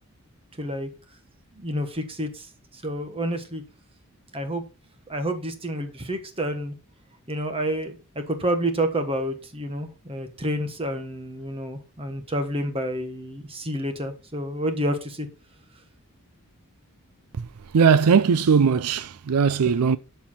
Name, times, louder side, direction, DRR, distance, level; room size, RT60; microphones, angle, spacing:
voice 1, 0.6-0.9 1.5-3.6 4.3-4.6 5.1-6.7 7.3-7.9 8.3-15.3, right 1 dB, 25° right, 1.4 m, -29 dB
voice 2, 17.7-20.0, right 6 dB, 80° right, 0.5 m, -19 dB
12.5 x 4.7 x 5.7 m
head